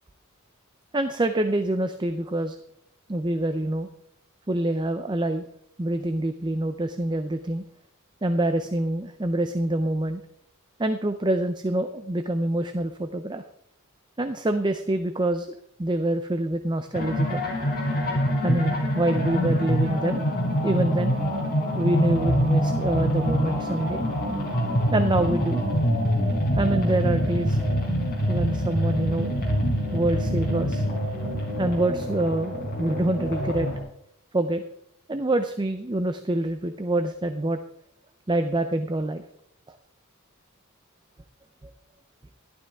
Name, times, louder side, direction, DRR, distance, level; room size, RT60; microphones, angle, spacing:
voice 1, 0.9-2.6 3.1-3.9 4.5-5.5 5.8-7.6 8.2-10.2 10.8-13.4 14.2-15.5 15.8-17.5 18.4-20.3 20.6-21.1 21.8-24.0 24.9-25.6 26.6-27.6 28.3-29.3 29.9-30.8 31.6-33.7 34.3-34.6 35.1-37.6 38.3-39.2 41.6-41.7, right 1 dB, 20° right, 8 dB, 0.5 m, -26 dB
sound 1, 16.9-33.8, equal, 40° left, 4.4 m, -25 dB
14.0 x 12.0 x 3.5 m, 0.72 s
head